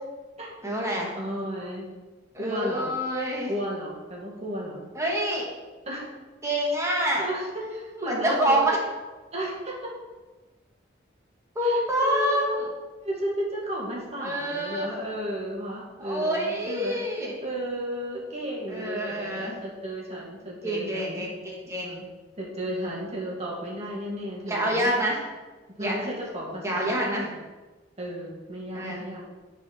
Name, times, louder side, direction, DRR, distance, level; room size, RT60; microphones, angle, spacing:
voice 1, 0.6-1.1 2.3-3.5 5.0-5.5 6.4-7.3 8.1-8.8 11.6-12.5 14.2-14.9 16.0-17.4 18.7-19.5 20.6-22.0 22.8-23.0 24.5-25.2 25.8-26.1 26.6-27.3 28.7-29.0, right 1 dB, 15° right, -3 dB, 1.7 m, -27 dB
voice 2, 1.1-1.9 2.4-2.9 3.5-4.8 5.9-6.1 7.2-8.6 9.3-10.0 11.6-12.7 13.0-17.0 17.4-21.3 22.4-25.0 25.7-27.4 28.0-29.2, equal, 35° right, -3 dB, 2.0 m, -33 dB
9.8 x 4.3 x 4.3 m, 1.2 s
head